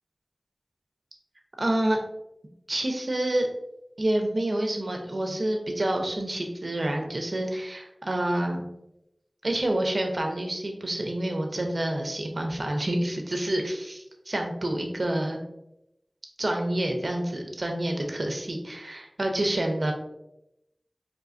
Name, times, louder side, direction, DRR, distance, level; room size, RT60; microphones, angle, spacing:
voice 1, 1.6-2.0 2.7-3.5 4.0-8.7 9.4-15.4 16.4-19.9, right 1 dB, 70° right, 3 dB, 0.7 m, -28 dB
4.5 x 3.1 x 2.6 m, 0.85 s
wide cardioid pair, 45°, 0 cm